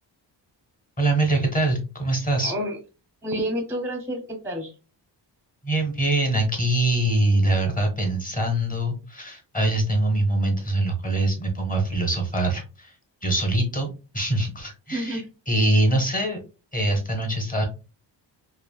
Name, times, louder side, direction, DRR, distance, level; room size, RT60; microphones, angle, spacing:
voice 1, 1.0-2.5 5.6-12.9 13.2-16.4 16.7-17.7, right 1 dB, 20° left, 3 dB, 0.8 m, -23 dB
voice 2, 2.4-2.8 3.2-4.7 14.9-15.2, equal, 5° right, 3 dB, 0.5 m, -29 dB
3.2 x 2.5 x 2.2 m, 0.32 s
wide cardioid pair, 135°, 44 cm